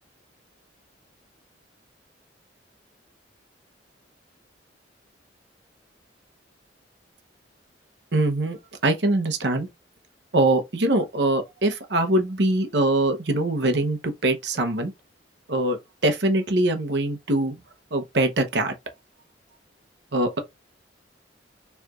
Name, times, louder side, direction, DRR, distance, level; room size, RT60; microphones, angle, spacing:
voice 1, 8.1-8.6 8.8-9.7 10.3-14.9 15.5-17.5 17.9-18.7 20.1-20.4, right 2 dB, 65° right, 0.9 m, -23 dB
4.7 x 3.3 x 2.5 m
head